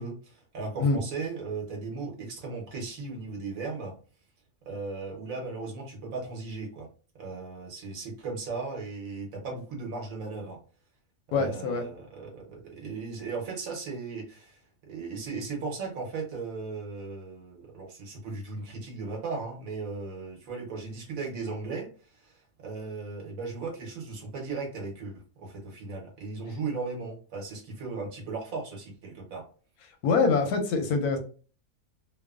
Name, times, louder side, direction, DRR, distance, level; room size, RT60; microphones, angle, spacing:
voice 1, 0.0-3.9 4.6-6.9 7.2-10.6 11.3-29.4, right 4 dB, 65° right, 1 dB, 1.2 m, -37 dB
voice 2, 11.3-11.8 30.0-31.2, left 4 dB, 90° left, 5 dB, 1.1 m, -24 dB
3.0 x 2.0 x 2.3 m, 0.39 s
omnidirectional pair, 1.6 m